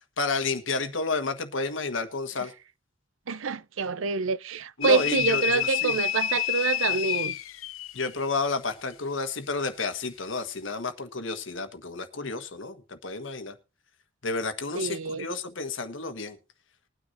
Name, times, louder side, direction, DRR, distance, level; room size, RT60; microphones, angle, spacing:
voice 1, 0.2-2.5 4.8-6.0 7.9-13.5 14.2-16.4, left 3 dB, 65° left, 1.4 m, -31 dB
voice 2, 3.3-7.4 14.7-15.2, right 5 dB, 75° right, 0.6 m, -27 dB
sound 1, 4.8-8.1, left 11 dB, 90° left, 0.6 m, -28 dB
20.5 x 9.5 x 2.6 m
head